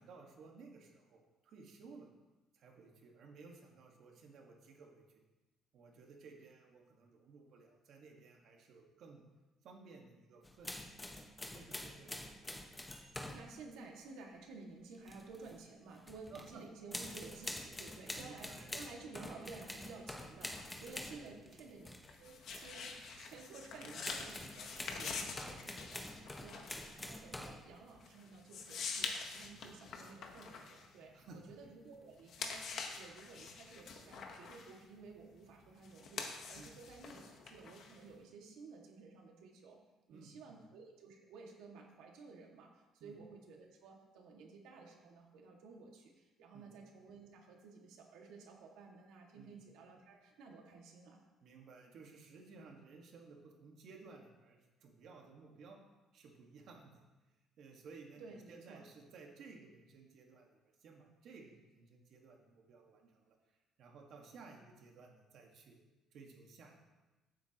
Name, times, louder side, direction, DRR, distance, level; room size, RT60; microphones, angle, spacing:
voice 1, 0.0-2.1 2.5-5.2 5.7-9.2 9.6-10.9 11.5-12.2 16.3-16.6 18.2-18.8 20.9-21.7 23.7-26.4 31.1-31.4 36.5-36.7 40.1-40.6 43.0-43.2 46.5-46.7 49.3-49.6 51.4-55.8 56.1-57.0 57.6-63.4 63.8-65.8 66.1-66.9, right 4 dB, 55° right, 1 dB, 1.6 m, -57 dB
sound 1, 10.4-13.5 14.9-15.6 15.9-16.5 16.9-22.1 22.5-22.7 23.2-23.4 24.0-27.7, left 1 dB, 10° left, 1.0 m, -46 dB
voice 2, 13.3-21.9 22.2-24.4 25.0-25.1 25.6-39.8 40.1-42.7 43.0-46.1 46.4-51.2 58.2-58.8, right 4 dB, 85° right, 0 dB, 1.9 m, -54 dB
sound 2, 20.0-31.7 32.1-38.2, left 5 dB, 50° left, 1.1 m, -46 dB
15.0 x 8.3 x 3.0 m, 1.1 s
cardioid pair, 165°, 0 cm